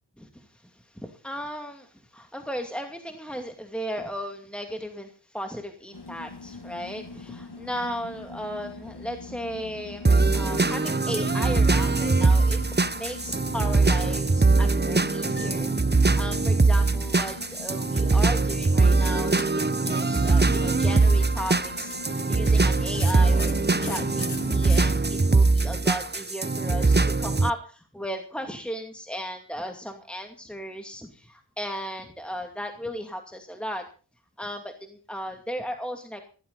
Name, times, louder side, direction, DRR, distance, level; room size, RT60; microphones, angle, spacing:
voice 1, 0.2-15.7 16.2-23.5 23.8-33.8 34.4-36.2, equal, ahead, 4 dB, 2.4 m, -36 dB
sound 1, 5.9-25.0, left 3 dB, 65° left, 1.8 m, -41 dB
sound 2, 10.0-27.5, right 3 dB, 25° right, 0.8 m, -22 dB
16.5 x 15.0 x 4.1 m, 0.37 s
wide cardioid pair, 45°, 43 cm